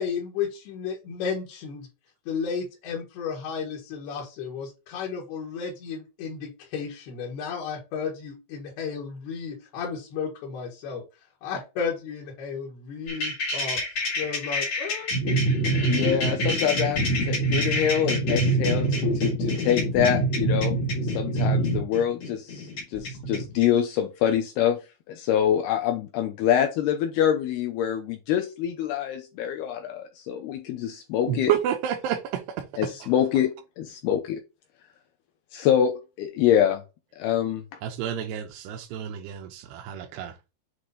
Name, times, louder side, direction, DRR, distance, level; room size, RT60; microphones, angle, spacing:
voice 1, 0.0-1.9 2.3-11.0 11.4-13.8 14.2-15.1, left 6 dB, 65° left, 3.3 m, -33 dB
sound 1, 13.1-23.6, right 1 dB, 50° left, 1.8 m, -25 dB
voice 2, 15.9-18.9 19.2-20.8 21.2-24.8 25.1-31.5 32.8-34.4 35.5-36.8 37.2-37.6, left 9 dB, 90° left, 2.2 m, -25 dB
voice 3, 31.3-32.7 37.8-40.3, right 10 dB, 80° right, 2.6 m, -29 dB
7.9 x 3.1 x 4.1 m
omnidirectional pair, 5.3 m